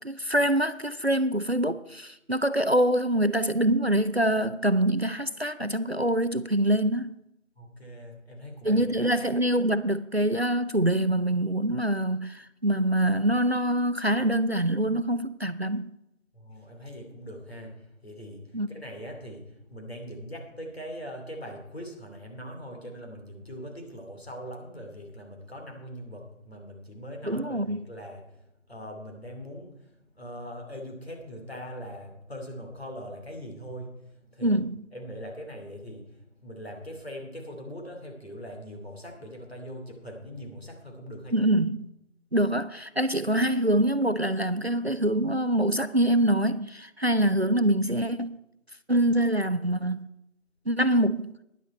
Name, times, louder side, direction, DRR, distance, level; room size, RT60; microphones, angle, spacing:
voice 1, 0.0-7.1 8.6-15.9 18.5-18.7 27.2-27.8 34.4-34.9 41.3-41.9 42.3-48.4 48.9-50.1 50.7-51.4, right 1 dB, 55° right, 0.5 m, -25 dB
voice 2, 7.6-9.1 16.3-29.9 30.1-34.6 34.9-36.1 36.4-41.5, equal, 50° left, 3.0 m, -41 dB
12.5 x 10.5 x 4.4 m
figure-of-eight pair, 180°, 39 cm